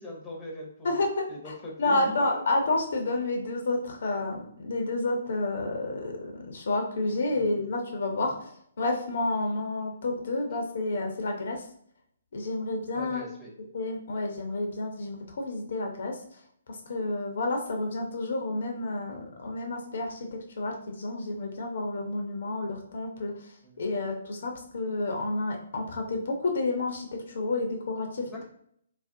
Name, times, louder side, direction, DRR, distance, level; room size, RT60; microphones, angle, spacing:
voice 1, 0.0-0.9 1.3-2.4 7.3-7.5 8.1-8.4 12.9-13.5 23.6-23.8 28.3-28.4, left 1 dB, 5° left, -3 dB, 0.6 m, -41 dB
voice 2, 0.8-11.6 12.3-13.2 13.7-16.2 16.9-20.3 20.6-23.3 23.8-28.4, left 2 dB, 60° left, 2 dB, 0.5 m, -30 dB
2.4 x 2.0 x 2.6 m, 0.66 s
figure-of-eight pair, 130°, 0 cm